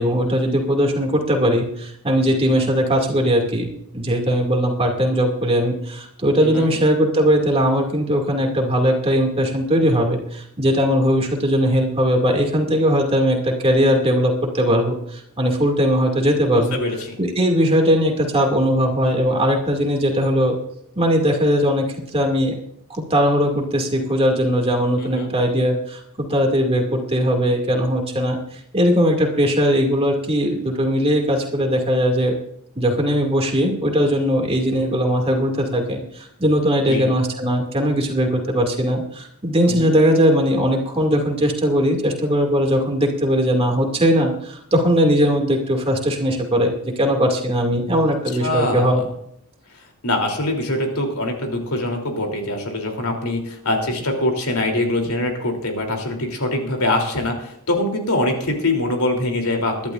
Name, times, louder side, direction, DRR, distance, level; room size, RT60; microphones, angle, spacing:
voice 1, 0.0-3.7 3.9-16.8 17.2-20.6 21.0-22.6 22.9-32.4 32.8-49.0, equal, 25° right, 2 dB, 2.3 m, -19 dB
voice 2, 6.4-6.8 16.5-17.2 25.0-25.3 36.8-37.1 39.7-40.0 48.4-49.0 50.0-59.9, left 1 dB, 80° left, 3 dB, 3.2 m, -23 dB
22.5 x 11.5 x 2.5 m, 0.72 s
head